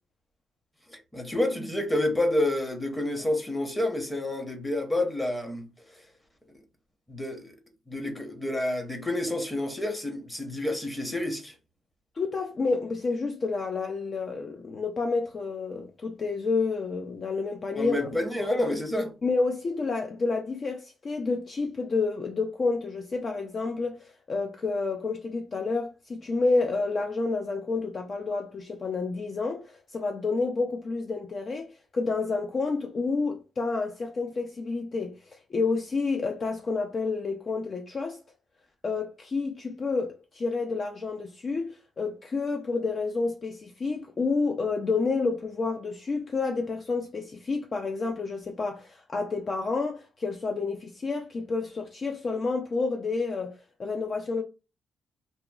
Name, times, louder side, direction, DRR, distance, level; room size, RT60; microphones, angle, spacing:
voice 1, 1.1-5.7 7.1-7.5 7.9-11.5 17.7-19.1, left 1 dB, 10° left, 0.8 m, -29 dB
voice 2, 12.2-18.0 18.4-18.7 19.2-38.2 38.8-54.4, left 4 dB, 40° left, 0.3 m, -29 dB
2.9 x 2.3 x 2.3 m
cardioid pair, 90°, 0 cm